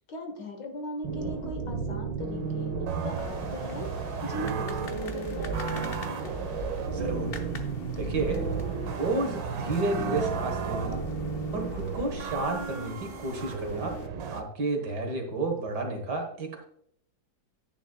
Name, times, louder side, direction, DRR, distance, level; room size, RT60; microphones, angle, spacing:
voice 1, 0.1-3.9 4.2-6.3, left 1 dB, 70° left, 5 dB, 2.0 m, -39 dB
sound 1, 1.0-14.4, right 5 dB, 90° right, 1.6 m, -33 dB
sound 2, 3.2-14.1, left 3 dB, 45° left, 0.8 m, -42 dB
voice 2, 6.9-7.4 8.0-8.5 8.9-11.0 11.5-14.0 14.3-16.6, right 3 dB, 65° right, 4 dB, 1.9 m, -31 dB
10.0 x 8.9 x 2.3 m, 0.68 s
omnidirectional pair, 2.0 m